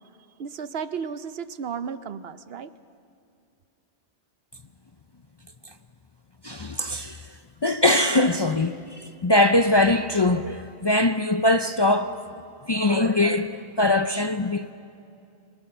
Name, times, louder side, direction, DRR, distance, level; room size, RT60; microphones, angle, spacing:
voice 1, 0.4-2.7, right 6 dB, 70° right, 1.0 m, -33 dB
voice 2, 6.4-7.3 7.6-12.2 12.6-14.7, left 2 dB, 35° left, 0.5 m, -22 dB
25.0 x 22.0 x 6.7 m
omnidirectional pair, 1.1 m